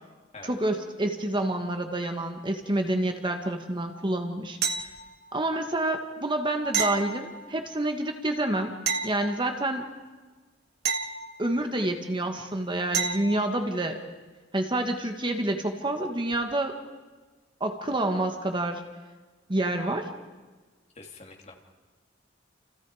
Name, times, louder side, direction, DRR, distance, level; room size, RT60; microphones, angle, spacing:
voice 1, 0.4-4.6 5.3-8.8 9.0-9.8 11.4-14.0 14.5-16.8 17.6-18.8 19.5-20.1, right 1 dB, 25° right, 5 dB, 1.6 m, -28 dB
sound 1, 4.6-5.4 6.7-7.8 8.9-9.9 10.8-11.9 12.9-13.6 16.3-16.4, right 6 dB, 60° right, 1.4 m, -31 dB
voice 2, 20.9-21.6, left 3 dB, 35° left, 1 dB, 3.1 m, -45 dB
29.5 x 29.0 x 5.0 m, 1.3 s
head